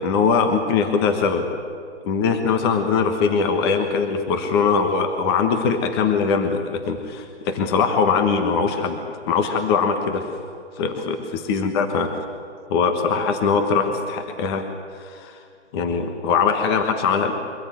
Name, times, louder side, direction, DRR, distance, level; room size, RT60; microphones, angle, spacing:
voice 1, 0.0-1.5 2.0-10.3 10.8-11.2 11.5-12.1 12.7-14.7 15.0-15.4 15.7-17.3, left 5 dB, 20° left, 6 dB, 1.3 m, -21 dB
23.5 x 14.0 x 9.4 m, 2.2 s
hypercardioid pair, 155°, 36 cm